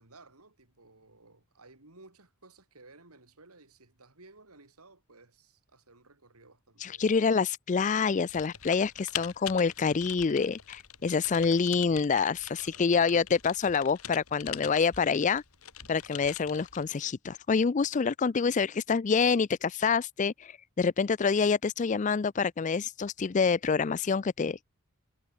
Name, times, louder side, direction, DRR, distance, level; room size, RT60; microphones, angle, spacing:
voice 1, 0.0-7.2 12.6-13.3, right 3 dB, 85° right, 4.6 m, -57 dB
voice 2, 6.8-15.4 15.9-24.6, left 5 dB, 35° left, 0.4 m, -27 dB
Typing, 8.3-16.9, left 10 dB, 80° left, 3.5 m, -43 dB
head